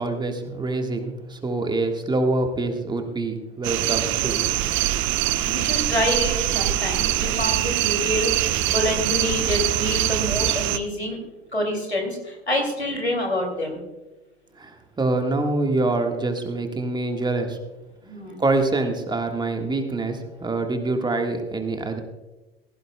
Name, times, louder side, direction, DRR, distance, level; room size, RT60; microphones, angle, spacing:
voice 1, 0.0-4.6 14.5-17.6 18.4-22.0, right 2 dB, 15° right, 5 dB, 1.5 m, -25 dB
sound 1, 3.6-10.8, right 14 dB, 40° right, 0.7 m, -23 dB
voice 2, 5.4-11.2 11.5-13.8 18.0-18.4, left 1 dB, 90° left, 2 dB, 2.7 m, -27 dB
16.5 x 15.5 x 2.2 m, 1.1 s
figure-of-eight pair, 75°, 31 cm